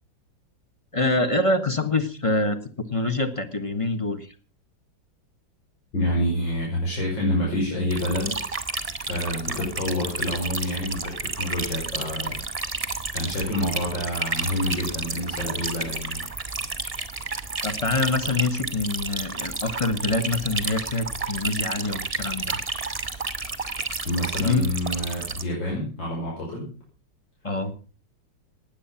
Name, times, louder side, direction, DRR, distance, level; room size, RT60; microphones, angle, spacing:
voice 1, 0.9-4.3 17.6-22.6 24.4-24.7 27.4-27.7, left 2 dB, 20° left, 8 dB, 1.3 m, -25 dB
voice 2, 5.9-8.4 9.1-12.4 13.1-16.2 24.0-26.7, left 1 dB, 80° left, -3 dB, 6.2 m, -27 dB
sound 1, 7.9-25.4, right 3 dB, 20° right, 1.4 m, -31 dB
19.0 x 8.6 x 5.8 m, 0.38 s
omnidirectional pair, 2.0 m